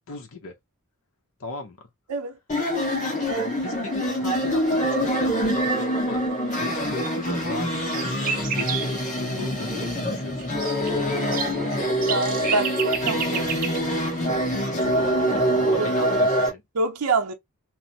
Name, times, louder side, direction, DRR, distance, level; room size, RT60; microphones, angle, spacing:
voice 1, 0.1-0.5 1.4-1.8 3.5-6.3 6.6-11.9 14.8-16.6, left 3 dB, 65° left, 0.7 m, -38 dB
sound 1, 2.5-16.5, equal, 35° left, 1.3 m, -25 dB
sound 2, 7.0-7.1 7.4-9.0 10.2-13.8, right 7 dB, 40° right, 0.6 m, -31 dB
voice 2, 12.1-13.5 15.8-15.9 16.7-17.3, right 3 dB, 90° right, 0.6 m, -26 dB
3.0 x 2.0 x 2.7 m
head